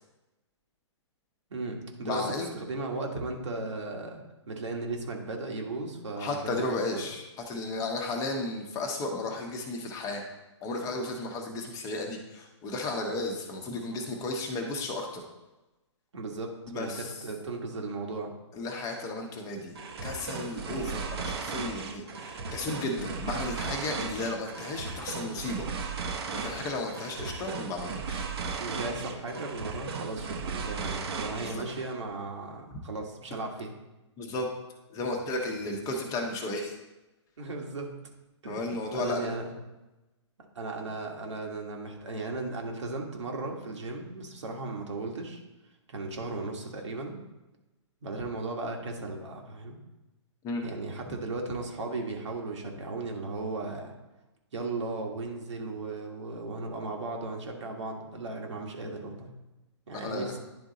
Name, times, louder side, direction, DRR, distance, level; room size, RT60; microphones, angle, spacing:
voice 1, 1.5-2.2 2.5-4.2 4.5-7.1 16.1-18.3 28.6-33.7 37.4-37.9 38.4-39.5 40.5-45.4 45.9-47.2 48.0-49.8 50.6-53.9 54.5-59.3 59.9-60.4, right 3 dB, 75° right, 1 dB, 1.5 m, -36 dB
voice 2, 2.0-2.5 6.2-10.2 10.6-15.2 16.7-17.1 18.5-19.7 20.0-25.7 26.3-28.3 31.4-31.6 34.2-34.5 34.9-36.7 38.5-39.4 50.4-50.6 59.9-60.3, left 2 dB, 20° left, 2 dB, 1.0 m, -34 dB
sound 1, 19.8-32.0, right 5 dB, 60° right, 1.0 m, -36 dB
10.5 x 3.6 x 4.0 m, 1.0 s
hypercardioid pair, 135°, 15 cm